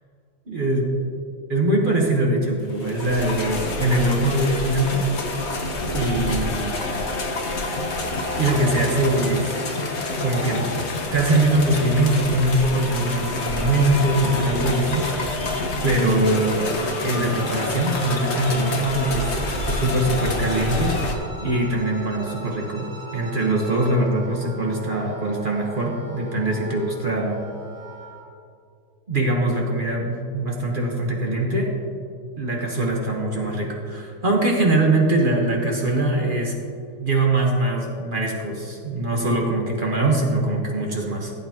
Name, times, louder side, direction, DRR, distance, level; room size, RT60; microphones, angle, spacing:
voice 1, 0.5-0.8 1.5-5.1 5.9-6.8 8.4-9.5 10.2-10.7 11.1-15.6 15.8-16.7 17.0-19.4 19.7-21.1 21.4-27.4 29.1-31.7 32.4-36.5 37.0-41.3, right 2 dB, 30° right, -1 dB, 1.2 m, -22 dB
sound 1, 2.7-21.1, left 2 dB, 45° left, 1.2 m, -27 dB
Bowed string instrument, 16.2-24.0, equal, 85° right, 3.3 m, -41 dB
Wind instrument woodwind instrument, 18.3-28.3, right 3 dB, 50° right, 1.8 m, -42 dB
16.0 x 8.6 x 2.9 m, 2.4 s
omnidirectional pair, 1.9 m